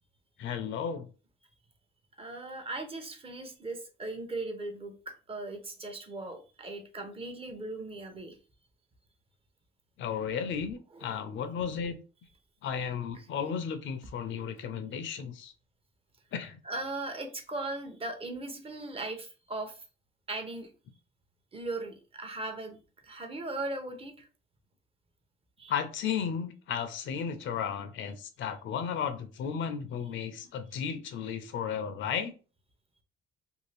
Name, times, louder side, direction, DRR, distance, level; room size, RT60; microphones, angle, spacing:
voice 1, 0.4-1.1 10.0-12.0 12.6-15.5 16.3-16.6 25.7-32.3, left 7 dB, 75° left, 9 dB, 0.5 m, -34 dB
voice 2, 2.2-8.4 16.6-19.8 20.3-20.7 21.5-22.8 23.0-24.3 25.6-25.7, right 2 dB, 30° right, 5 dB, 0.7 m, -38 dB
2.7 x 2.3 x 3.2 m, 0.35 s
cardioid pair, 90°, 20 cm